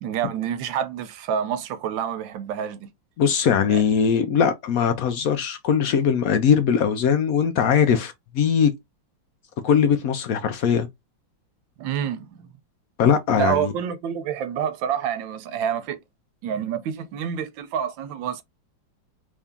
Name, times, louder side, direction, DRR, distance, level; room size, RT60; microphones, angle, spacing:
voice 1, 0.0-2.9 3.7-3.8 11.8-12.5 13.4-16.0 16.4-18.4, right 9 dB, 90° right, 1.4 m, -28 dB
voice 2, 3.2-8.7 9.6-10.9 13.0-13.7, left 7 dB, 80° left, 0.7 m, -20 dB
3.5 x 2.7 x 3.5 m
omnidirectional pair, 2.0 m